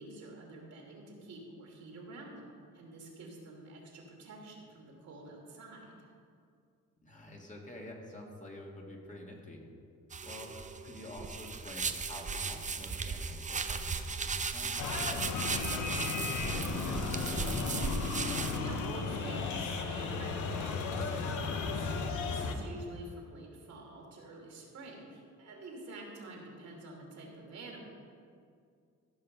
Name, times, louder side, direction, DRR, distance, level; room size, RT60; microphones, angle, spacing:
voice 1, 0.0-2.5 2.7-6.1 18.6-27.8, right 2 dB, 65° right, -1 dB, 2.9 m, -48 dB
voice 2, 7.0-9.6 10.2-10.5 10.8-17.5, left 1 dB, 25° left, -1 dB, 2.0 m, -48 dB
sound 1, 10.1-18.6, right 4 dB, 25° right, 0.6 m, -36 dB
sound 2, 14.8-22.6, left 4 dB, 80° left, 1.1 m, -35 dB
15.5 x 5.8 x 5.4 m, 2.3 s
cardioid pair, 90°, 30 cm